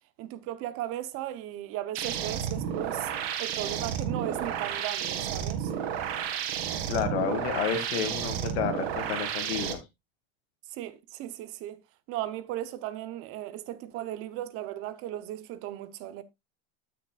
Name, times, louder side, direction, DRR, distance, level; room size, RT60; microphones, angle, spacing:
voice 1, 0.2-5.7 10.7-11.8 12.1-16.2, right 13 dB, 45° right, 0.9 m, -36 dB
sound 1, 1.9-9.7, right 9 dB, 70° right, 1.9 m, -32 dB
voice 2, 6.9-9.8, left 7 dB, 75° left, 2.5 m, -30 dB
13.5 x 6.0 x 2.4 m
supercardioid pair, 145°, 32 cm